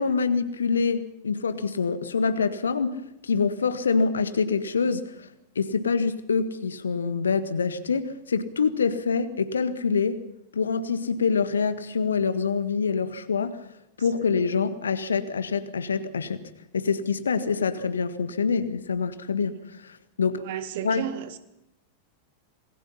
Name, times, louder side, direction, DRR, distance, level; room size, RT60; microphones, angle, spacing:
voice 1, 0.0-5.3 5.5-10.2 10.5-13.7 14.0-16.4 16.7-20.4 20.8-21.1, left 5 dB, 70° left, 1.7 m, -26 dB
voice 2, 20.4-21.4, right 11 dB, 55° right, 1.9 m, -33 dB
27.5 x 20.5 x 5.6 m
figure-of-eight pair, 90°, 0 cm